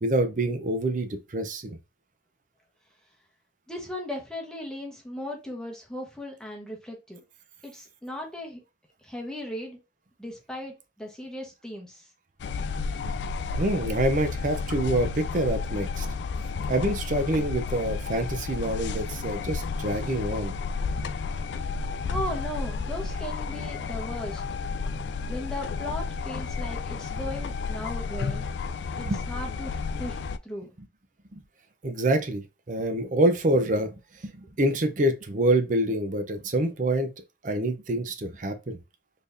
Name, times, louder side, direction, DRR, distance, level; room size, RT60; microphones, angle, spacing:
voice 1, 0.0-1.8 13.6-16.1 16.7-20.5 29.0-29.2 30.8-30.9 31.3-31.4 31.8-33.9 34.2-37.1 37.4-38.8, right 1 dB, 45° right, 0.6 m, -26 dB
voice 2, 3.7-7.2 7.6-8.6 9.0-9.8 10.2-12.0 22.1-24.4 25.2-28.4 29.0-30.7, left 1 dB, 5° left, 1.1 m, -37 dB
sound 1, 12.4-30.4, left 4 dB, 70° left, 0.3 m, -32 dB
4.2 x 3.4 x 2.5 m
head